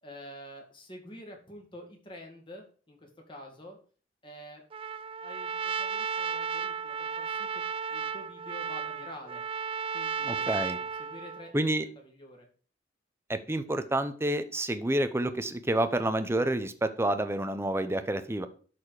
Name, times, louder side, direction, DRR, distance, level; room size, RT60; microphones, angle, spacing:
voice 1, 0.0-3.8 4.2-4.6 5.2-7.6 7.9-9.4 9.9-11.5 12.0-12.5, equal, 25° left, 1 dB, 2.2 m, -48 dB
Trumpet, 4.7-11.5, right 6 dB, 30° right, 0.3 m, -34 dB
voice 2, 10.2-10.8 11.5-11.9 13.3-18.5, right 1 dB, 15° right, 10 dB, 0.7 m, -29 dB
11.5 x 4.4 x 4.9 m, 0.41 s
head